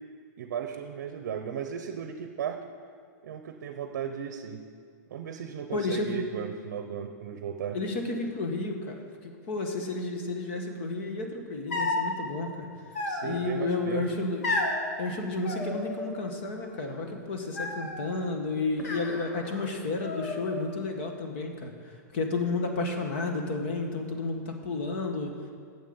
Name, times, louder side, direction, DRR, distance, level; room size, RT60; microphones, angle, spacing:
voice 1, 0.4-2.6 3.2-4.6 5.1-7.8 13.1-14.1, right 8 dB, 55° right, 7 dB, 0.8 m, -35 dB
voice 2, 5.7-6.3 7.7-12.7 13.2-14.5 15.0-25.3, left 3 dB, 40° left, 3 dB, 1.4 m, -32 dB
sound 1, 11.7-12.1 12.9-13.6 14.4-14.8 15.4-16.3 16.6-17.1 17.6-18.1 18.8-19.7 20.0-20.8, left 2 dB, 55° left, 1.7 m, -32 dB
9.2 x 7.3 x 7.9 m, 2.2 s
supercardioid pair, 175°, 10 cm